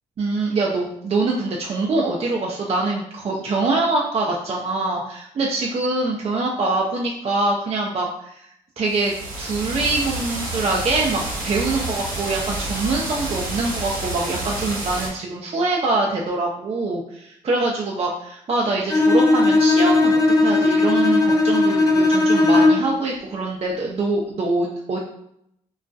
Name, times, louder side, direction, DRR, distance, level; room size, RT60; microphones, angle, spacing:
voice 1, 0.2-8.5 8.8-25.0, right 2 dB, 40° right, -2 dB, 0.5 m, -24 dB
sound 1, 8.9-15.1, right 2 dB, 65° right, 0.8 m, -29 dB
Bowed string instrument, 18.9-23.0, left 2 dB, 20° left, 0.5 m, -17 dB
2.3 x 2.1 x 2.5 m, 0.74 s
hypercardioid pair, 45°, 16 cm